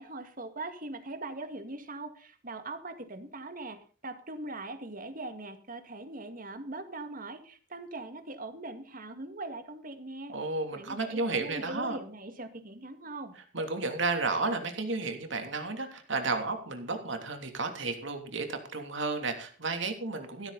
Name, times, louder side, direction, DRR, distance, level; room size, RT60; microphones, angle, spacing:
voice 1, 0.0-10.3 10.7-13.4, right 2 dB, 45° right, 8 dB, 2.1 m, -41 dB
voice 2, 10.3-12.0 13.5-20.5, right 3 dB, 65° right, 5 dB, 3.1 m, -32 dB
15.0 x 13.5 x 4.2 m, 0.39 s
head